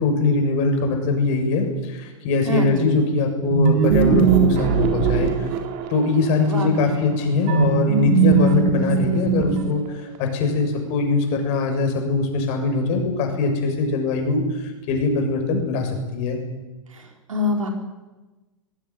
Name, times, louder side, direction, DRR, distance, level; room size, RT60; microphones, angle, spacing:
voice 1, 0.0-5.5 5.9-16.4, left 3 dB, 45° left, 4 dB, 7.1 m, -22 dB
voice 2, 2.4-2.9 6.5-7.0 16.9-17.7, left 1 dB, 80° right, 3 dB, 4.6 m, -26 dB
sound 1, 3.5-6.1 7.5-9.9, right 6 dB, 45° right, 3.8 m, -19 dB
21.5 x 16.5 x 9.8 m, 1.2 s
figure-of-eight pair, 100°, 17 cm